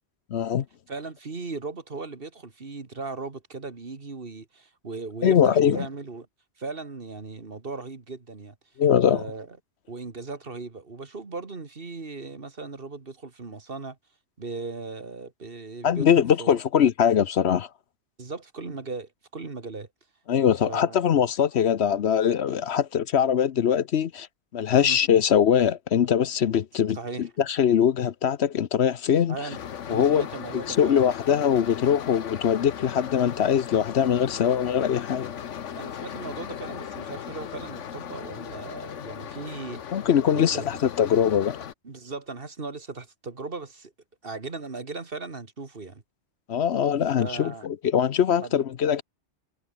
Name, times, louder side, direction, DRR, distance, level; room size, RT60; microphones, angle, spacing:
voice 1, 0.3-0.6 5.2-5.9 8.8-9.2 15.8-17.7 20.3-24.3 24.5-29.4 29.9-30.2 30.5-35.3 39.9-41.6 46.5-49.0, left 8 dB, 65° left, 1.0 m, -22 dB
voice 2, 0.9-6.3 6.6-8.6 9.0-9.5 9.9-14.0 14.4-16.6 18.2-19.9 20.7-21.0 24.7-25.0 26.9-27.3 29.3-29.6 29.9-31.1 35.7-40.7 41.8-43.9 44.2-46.0 47.2-47.7 48.4-48.7, right 3 dB, 50° right, 2.2 m, -37 dB
sound 1, 29.5-41.7, left 8 dB, 85° left, 1.3 m, -37 dB
omnidirectional pair, 1.2 m